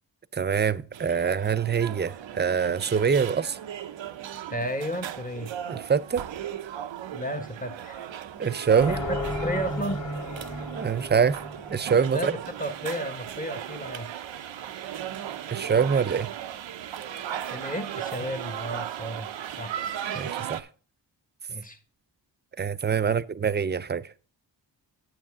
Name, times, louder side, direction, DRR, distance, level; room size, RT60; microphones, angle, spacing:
voice 1, 0.3-3.6 5.7-6.2 8.4-9.0 10.8-11.4 11.7-12.3 15.5-16.3 20.1-20.7 22.6-24.1, right 6 dB, 25° right, 0.4 m, -24 dB
sound 1, 0.9-20.6, right 10 dB, 80° right, 0.7 m, -37 dB
voice 2, 4.5-5.5 7.1-8.1 8.9-10.1 12.1-14.1 17.5-19.3 19.6-19.7 21.5-21.8 23.0-23.1, equal, 20° left, 1.2 m, -33 dB
sound 2, 8.8-12.2, left 1 dB, 45° left, 2.1 m, -33 dB
8.8 x 8.4 x 3.6 m
cardioid pair, 60°, 45 cm